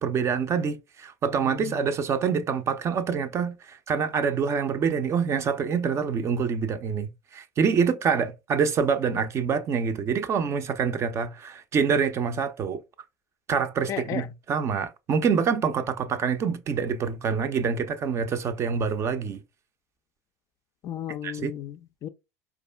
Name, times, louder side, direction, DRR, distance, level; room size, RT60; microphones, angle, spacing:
voice 1, 0.0-12.8 13.5-19.4 21.2-21.5, right 6 dB, 30° right, 0.5 m, -26 dB
voice 2, 1.3-1.8 13.9-14.3 20.8-22.1, left 10 dB, 35° left, 0.3 m, -34 dB
4.7 x 2.4 x 2.2 m
figure-of-eight pair, 75°, 9 cm